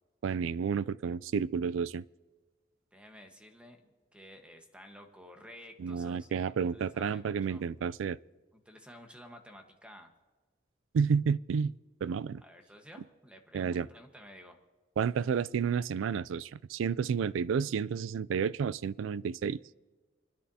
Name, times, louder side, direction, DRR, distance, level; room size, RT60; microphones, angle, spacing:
voice 1, 0.2-2.0 5.8-8.2 10.9-11.8 12.0-12.4 13.5-13.9 15.0-19.6, right 6 dB, 85° right, 0.3 m, -31 dB
voice 2, 2.9-3.8 4.1-7.7 8.5-10.1 12.4-14.6, equal, 5° right, 1.2 m, -52 dB
28.5 x 10.5 x 2.8 m
head